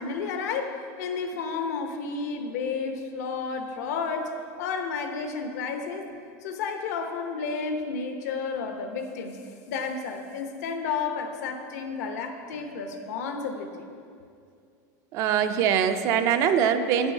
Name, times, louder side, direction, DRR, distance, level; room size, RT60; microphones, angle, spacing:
voice 1, 0.0-4.3 4.6-6.1 6.4-9.4 9.7-13.9, left 5 dB, 75° left, 5 dB, 1.0 m, -31 dB
voice 2, 15.1-17.1, right 8 dB, 35° right, 9 dB, 0.4 m, -23 dB
9.1 x 6.2 x 5.4 m, 2.4 s
supercardioid pair, 170°, 9 cm